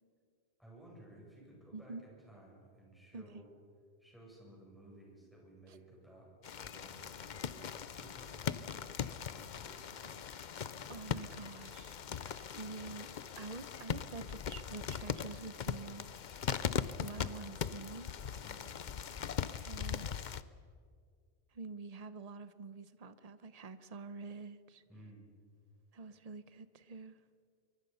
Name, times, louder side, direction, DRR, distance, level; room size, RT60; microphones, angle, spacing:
voice 1, 0.6-3.5 4.0-6.3 6.6-10.2 10.8-11.1 18.4-18.7 24.9-25.2, right 1 dB, ahead, -4 dB, 7.8 m, -57 dB
voice 2, 1.7-2.0 3.1-3.4 5.7-5.8 10.9-16.1 17.0-18.1 19.6-20.1 21.5-24.8 25.9-27.2, right 4 dB, 35° right, 13 dB, 0.9 m, -47 dB
sound 1, 6.4-20.4, left 7 dB, 50° left, 0.7 m, -40 dB
23.5 x 23.0 x 5.6 m, 2.1 s
omnidirectional pair, 1.2 m